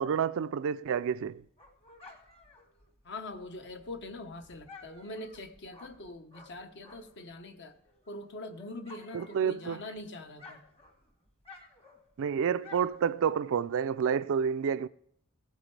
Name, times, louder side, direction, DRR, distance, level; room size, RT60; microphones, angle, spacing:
voice 1, 0.0-1.4 9.1-9.8 12.2-14.9, right 7 dB, 60° right, 0.4 m, -29 dB
Dog, 1.0-7.3 7.7-10.0 10.2-13.7, left 3 dB, 25° left, 1.4 m, -54 dB
voice 2, 3.0-7.7 8.1-10.6, left 2 dB, 50° left, 1.0 m, -43 dB
16.0 x 9.0 x 3.3 m
head